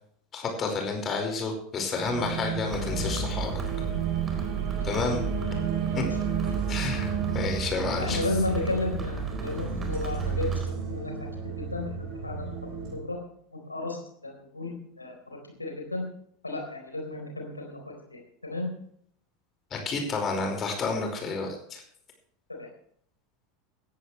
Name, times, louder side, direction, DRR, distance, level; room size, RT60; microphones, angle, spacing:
voice 1, 0.3-3.5 4.8-5.2 6.0-6.1 6.7-8.2 19.7-21.8, left 4 dB, 30° left, 3 dB, 5.1 m, -30 dB
sound 1, 2.0-13.0, right 7 dB, 50° right, 6.9 m, -32 dB
sound 2, 2.7-10.7, right 3 dB, 25° right, 4.4 m, -34 dB
voice 2, 8.0-10.6 10.9-11.1 11.6-12.4 12.9-13.2 13.7-15.1 15.6-16.1 16.4-18.7 22.6-22.7, left 2 dB, 85° left, 2 dB, 4.1 m, -33 dB
17.0 x 15.0 x 3.3 m, 0.66 s
figure-of-eight pair, 80°, 0 cm